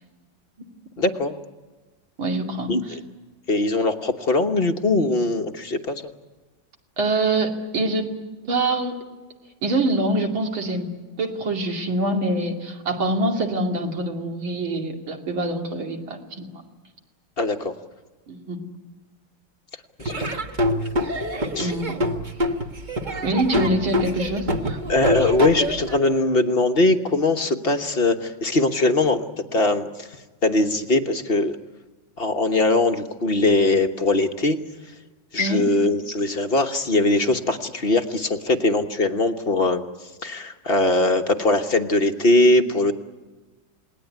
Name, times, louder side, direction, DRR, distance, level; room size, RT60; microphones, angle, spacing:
voice 1, 1.0-1.3 2.7-3.0 3.5-6.1 17.4-17.7 20.0-20.4 21.5-21.7 24.9-29.2 29.5-30.1 30.4-31.6 32.2-34.6 35.3-39.8 40.2-42.9, left 2 dB, 35° left, 6 dB, 1.2 m, -21 dB
voice 2, 2.2-3.0 7.0-8.1 8.5-9.0 9.6-10.9 11.2-16.6 18.3-18.6 21.6-22.0 23.2-24.8 35.4-35.6, right 2 dB, 75° right, 2 dB, 3.4 m, -25 dB
Laughter / Drum, 20.0-26.0, equal, 25° right, 1.2 m, -26 dB
28.5 x 19.5 x 9.4 m, 1.3 s
omnidirectional pair, 2.2 m